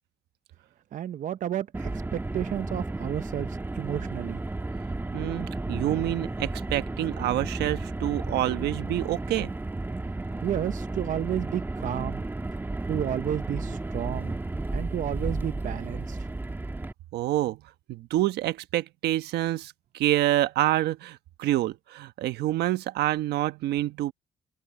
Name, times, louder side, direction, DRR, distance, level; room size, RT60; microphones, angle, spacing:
voice 1, 0.9-4.4 10.4-12.2 12.9-14.4 14.7-16.3, right 10 dB, 50° right, 0.8 m, -32 dB
Car, 1.7-16.9, right 2 dB, 10° right, 1.7 m, -33 dB
voice 2, 5.1-9.5 17.1-17.6 17.9-24.1, right 14 dB, 75° right, 1.3 m, -27 dB
cardioid pair, 110°, 17 cm